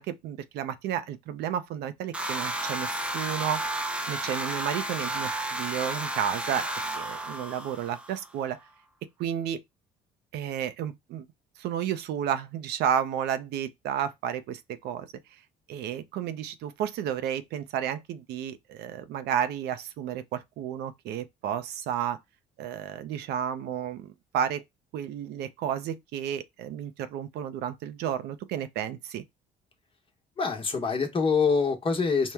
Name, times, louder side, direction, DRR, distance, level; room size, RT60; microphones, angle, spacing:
voice 1, 0.0-6.7 6.9-8.6 9.2-9.6 10.3-11.2 11.6-15.1 15.7-22.2 22.6-24.6 24.9-29.2, right 9 dB, 75° right, 0.5 m, -32 dB
sound 1, 2.1-8.3, right 1 dB, 5° right, 0.5 m, -32 dB
voice 2, 30.4-32.3, left 5 dB, 30° left, 1.0 m, -25 dB
4.4 x 2.1 x 3.4 m
cardioid pair, 110°, 17 cm